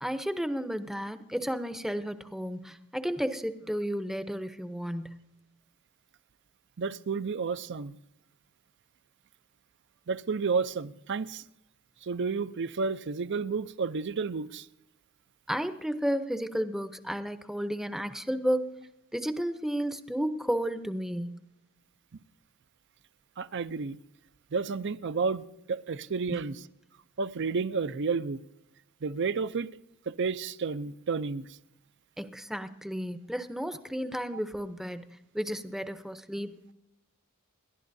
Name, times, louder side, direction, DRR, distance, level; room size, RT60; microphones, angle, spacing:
voice 1, 0.0-5.2 15.5-18.8 19.1-21.4 26.3-26.5 32.2-35.0 35.3-36.7, equal, ahead, 0.7 m, -32 dB
voice 2, 6.8-8.0 10.1-11.4 12.0-14.7 23.4-24.0 24.5-26.6 27.2-28.4 29.0-29.7 30.1-31.6, right 5 dB, 55° right, 0.5 m, -31 dB
28.0 x 12.0 x 2.7 m
head